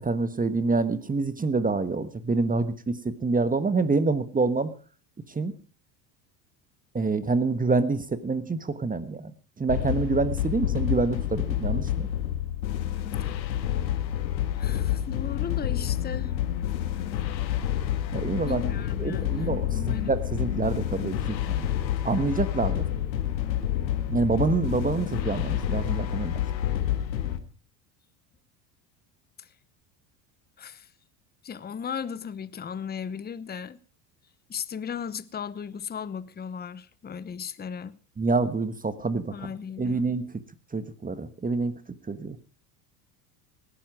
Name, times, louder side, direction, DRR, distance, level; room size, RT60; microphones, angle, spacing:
voice 1, 0.0-4.7 5.3-5.5 6.9-9.3 9.6-12.1 18.1-18.6 19.0-21.7 22.0-22.8 24.1-26.4 38.2-39.5 39.8-40.4 40.7-41.7 42.1-42.4, right 3 dB, 15° right, 1.3 m, -27 dB
sound 1, 9.7-27.4, left 11 dB, 90° left, 1.7 m, -28 dB
voice 2, 14.6-16.3 18.5-20.1 29.4-29.5 30.6-30.9 31.4-33.8 34.5-38.0 39.3-40.1, left 7 dB, 20° left, 0.9 m, -36 dB
19.0 x 12.5 x 4.8 m
hypercardioid pair, 85°, 50 cm